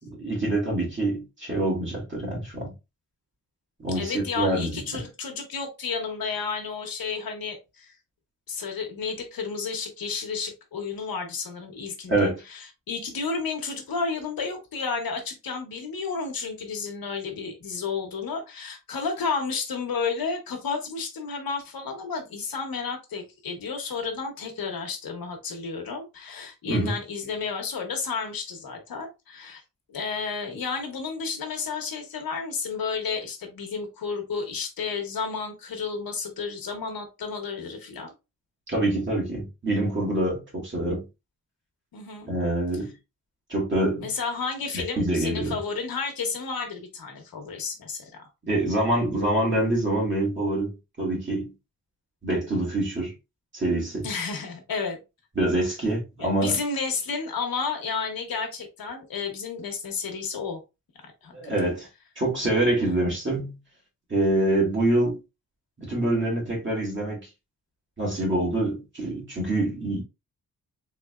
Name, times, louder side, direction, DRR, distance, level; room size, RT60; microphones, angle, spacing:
voice 1, 0.0-2.7 3.8-4.8 12.1-12.4 26.7-27.0 38.7-41.0 42.3-42.9 43.5-44.1 45.0-45.6 48.4-51.5 52.2-53.1 53.5-54.1 55.4-56.6 61.3-61.9 62.2-63.6 64.1-65.2 65.8-67.2 68.0-70.0, right 1 dB, 35° right, 2.0 m, -25 dB
voice 2, 3.9-7.9 8.5-29.6 29.9-38.1 41.9-42.3 44.0-48.1 54.0-55.0 56.2-60.6 61.2-61.7 62.8-63.1, left 5 dB, 75° left, 1.1 m, -32 dB
3.8 x 3.4 x 2.4 m
wide cardioid pair, 160°, 35 cm